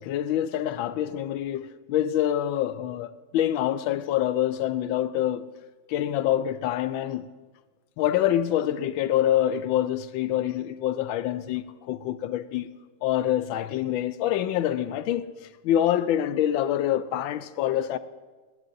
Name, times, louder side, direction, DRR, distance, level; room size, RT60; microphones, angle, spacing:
voice 1, 0.0-5.4 5.9-7.3 8.0-12.7 13.0-15.2 15.6-18.0, left 11 dB, 80° left, 1.3 m, -26 dB
29.5 x 11.0 x 2.6 m
omnidirectional pair, 2.2 m